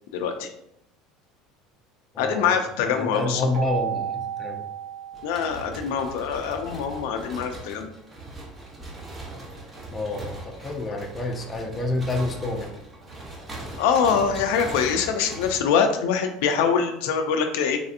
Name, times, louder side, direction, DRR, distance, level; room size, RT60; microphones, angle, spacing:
voice 1, 0.1-0.5 2.2-3.4 5.2-7.9 13.8-17.8, left 6 dB, 80° left, 5 dB, 0.3 m, -24 dB
voice 2, 2.1-4.7 9.9-12.7, left 2 dB, 20° left, 2 dB, 0.5 m, -29 dB
Keyboard (musical), 3.5-6.2, right 8 dB, 65° right, 0.6 m, -33 dB
sound 1, 5.1-15.6, right 2 dB, 20° right, 0.7 m, -40 dB
3.3 x 2.6 x 2.4 m, 0.77 s
supercardioid pair, 125°, 0 cm